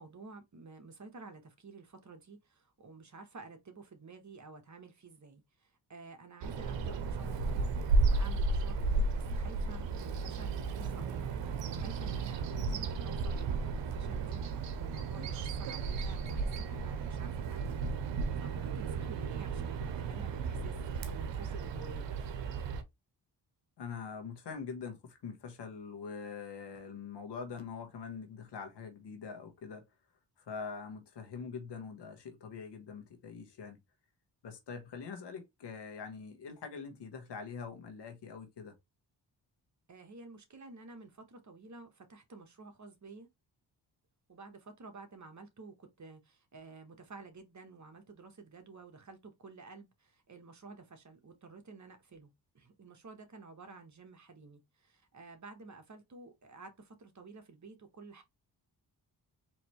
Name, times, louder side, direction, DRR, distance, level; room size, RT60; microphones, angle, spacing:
voice 1, 0.0-7.7 8.0-18.0 18.4-22.2 39.9-43.3 44.3-58.2, right 4 dB, 40° right, 1.3 m, -52 dB
Bird vocalization bird call bird song, 6.4-22.8, right 3 dB, 85° right, 0.8 m, -34 dB
voice 2, 23.8-29.9 30.5-33.8 34.4-38.7, left 5 dB, 70° left, 1.3 m, -44 dB
4.3 x 3.1 x 3.1 m
cardioid pair, 65°, 43 cm